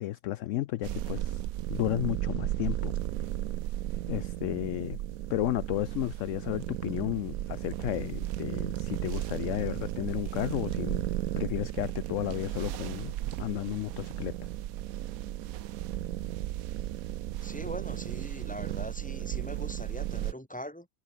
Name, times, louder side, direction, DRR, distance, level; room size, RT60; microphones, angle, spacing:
voice 1, 0.0-2.9 4.1-5.0 5.3-11.0 11.4-13.1 13.4-14.3, left 14 dB, 70° left, 0.8 m, -33 dB
sound 1, 0.8-20.3, right 13 dB, 70° right, 1.0 m, -34 dB
voice 2, 17.4-20.9, equal, 5° left, 4.0 m, -41 dB
omnidirectional pair, 1.6 m